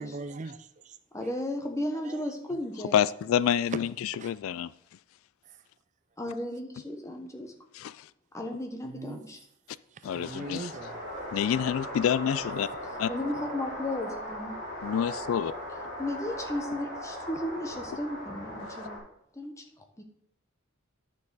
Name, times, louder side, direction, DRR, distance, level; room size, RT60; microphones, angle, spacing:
voice 1, 0.0-1.0 2.0-2.2 4.2-4.3 8.9-9.2 9.9-11.0, right 3 dB, 35° right, 0.4 m, -41 dB
voice 2, 1.1-2.9 6.2-7.5 8.3-9.4 13.1-14.6 16.0-19.0 19.4-19.6 20.0-20.1, left 1 dB, 15° left, 1.1 m, -34 dB
voice 3, 2.9-4.7 7.7-8.1 10.0-10.7 11.3-12.7 13.0-13.1 14.8-15.5, left 9 dB, 75° left, 0.3 m, -28 dB
sound 1, 10.0-19.0, equal, 35° left, 3.4 m, -38 dB
11.0 x 6.6 x 4.0 m
head